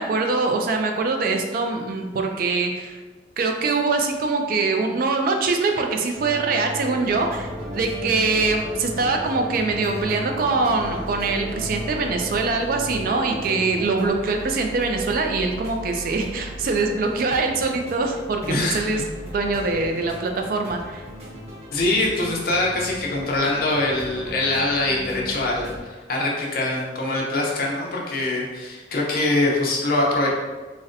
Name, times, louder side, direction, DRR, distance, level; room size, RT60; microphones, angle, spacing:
voice 1, 0.0-3.0 3.4-19.0 19.3-21.0, right 3 dB, 50° right, 3 dB, 0.3 m, -23 dB
sound 1, 6.1-14.1, equal, 5° right, 0.8 m, -36 dB
sound 2, 7.0-25.8, equal, 35° right, 0.9 m, -38 dB
voice 2, 18.4-19.0 21.7-30.3, left 2 dB, 50° left, -2 dB, 0.6 m, -23 dB
3.9 x 2.1 x 2.5 m, 1.3 s
head